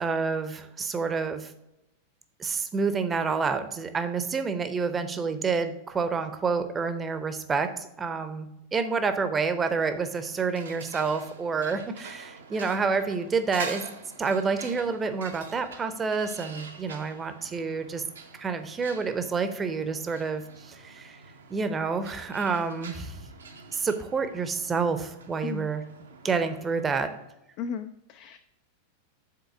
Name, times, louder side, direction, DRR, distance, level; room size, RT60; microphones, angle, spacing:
voice 1, 0.0-1.5 2.4-13.8 14.2-18.0 18.4-21.2 21.5-23.2 23.7-25.8 26.2-27.1, right 5 dB, 20° right, 9 dB, 0.7 m, -28 dB
sound 1, 9.9-27.3, right 4 dB, 70° right, 0.8 m, -45 dB
voice 2, 27.6-28.4, left 6 dB, 45° left, 9 dB, 0.4 m, -35 dB
6.7 x 4.1 x 5.8 m, 0.88 s
figure-of-eight pair, 90°, 0 cm